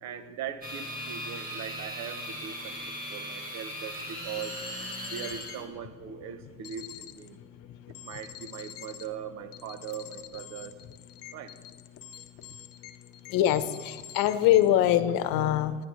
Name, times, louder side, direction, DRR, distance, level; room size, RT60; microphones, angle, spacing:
voice 1, 0.0-4.6 5.1-7.4 8.0-10.8 11.3-11.5, right 8 dB, 50° right, 10 dB, 0.9 m, -40 dB
sound 1, 0.6-5.7, equal, 25° right, 1.8 m, -38 dB
sound 2, 3.9-4.0 4.4-5.6 6.6-7.3 7.9-9.1 9.5-14.7, left 10 dB, 40° left, 0.6 m, -46 dB
voice 2, 13.3-15.8, left 12 dB, 75° left, 11 dB, 1.0 m, -23 dB
26.5 x 10.5 x 3.2 m, 1.5 s
cardioid pair, 170°, 35 cm